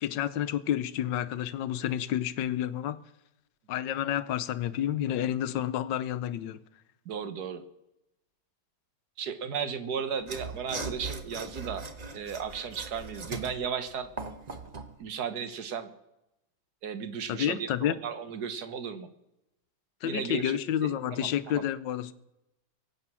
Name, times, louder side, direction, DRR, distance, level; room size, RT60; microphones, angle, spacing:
voice 1, 0.0-3.0 3.7-6.6 17.3-18.0 20.0-22.1, left 11 dB, 85° left, 1.4 m, -30 dB
voice 2, 7.1-7.6 9.2-11.8 12.1-14.1 15.0-15.9 16.8-17.7 18.0-19.1 20.0-21.6, right 6 dB, 65° right, 1.7 m, -35 dB
Mechanisms / Sawing, 10.2-14.9, right 3 dB, 30° right, 0.8 m, -40 dB
23.0 x 8.7 x 6.1 m
omnidirectional pair, 1.9 m